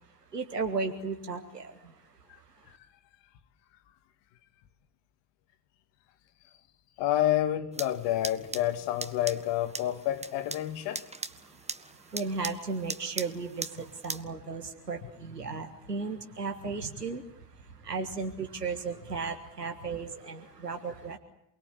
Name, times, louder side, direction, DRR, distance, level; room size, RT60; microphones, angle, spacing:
voice 1, 0.3-1.7 12.1-17.2 17.8-21.2, right 4 dB, 90° right, 1.8 m, -35 dB
voice 2, 7.0-11.1, left 13 dB, 65° left, 2.4 m, -29 dB
sound 1, 7.7-14.2, right 3 dB, 15° right, 1.8 m, -40 dB
28.5 x 21.0 x 8.5 m
figure-of-eight pair, 50°, 47 cm